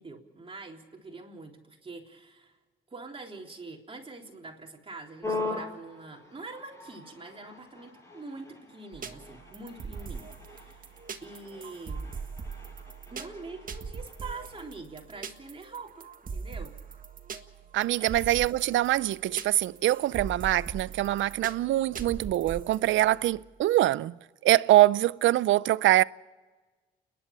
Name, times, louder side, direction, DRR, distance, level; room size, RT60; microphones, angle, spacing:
voice 1, 0.0-2.6 2.9-10.9 11.2-12.1 13.1-16.8 18.0-18.2, right 3 dB, 25° right, 3.7 m, -44 dB
sound 1, 5.2-14.7, left 3 dB, 15° left, 6.1 m, -41 dB
sound 2, 8.9-23.3, right 5 dB, 45° right, 1.7 m, -41 dB
voice 2, 17.7-24.2 24.4-26.0, right 15 dB, 75° right, 0.6 m, -24 dB
29.5 x 11.0 x 8.8 m
cardioid pair, 90°, 20 cm